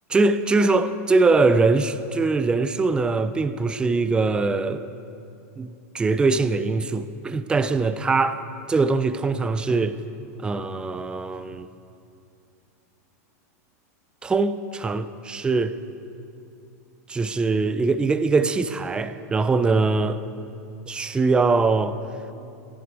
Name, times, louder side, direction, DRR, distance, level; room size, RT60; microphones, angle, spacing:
voice 1, 0.1-4.8 5.6-8.4 8.7-10.0 10.4-11.7 14.2-15.7 17.1-20.2 20.9-22.0, right 3 dB, 10° right, 0.5 m, -22 dB
18.5 x 11.5 x 4.8 m
supercardioid pair, 130°, 9 cm